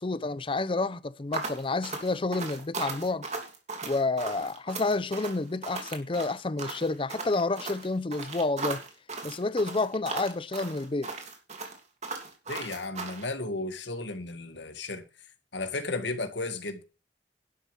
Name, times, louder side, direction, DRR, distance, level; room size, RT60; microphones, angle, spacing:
voice 1, 0.0-3.3 3.8-8.8 9.2-11.1, left 3 dB, 30° left, 0.6 m, -29 dB
sound 1, 1.3-13.3, right 3 dB, 40° right, 2.9 m, -37 dB
voice 2, 12.5-15.0 15.5-16.8, left 2 dB, 85° left, 2.0 m, -34 dB
11.5 x 6.7 x 7.3 m
head